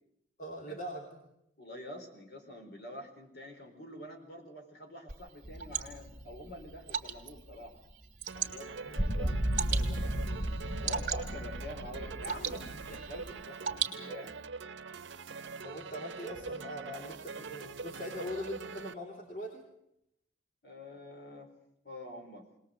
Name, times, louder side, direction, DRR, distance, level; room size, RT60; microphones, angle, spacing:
voice 1, 0.4-1.2 8.8-9.0 15.6-19.7, equal, 45° left, 0 dB, 2.9 m, -41 dB
voice 2, 1.6-7.8 8.3-9.3 9.6-14.3 20.6-21.5 21.8-22.5, left 1 dB, 65° left, 4 dB, 4.4 m, -47 dB
Water / Drip, 5.1-14.5, right 8 dB, 45° right, 2.6 m, -40 dB
sound 1, 5.4-7.4 9.0-13.4, right 1 dB, 5° right, 3.6 m, -35 dB
sound 2, 8.3-18.9, right 4 dB, 90° right, 0.7 m, -44 dB
21.0 x 20.0 x 7.8 m, 0.78 s
head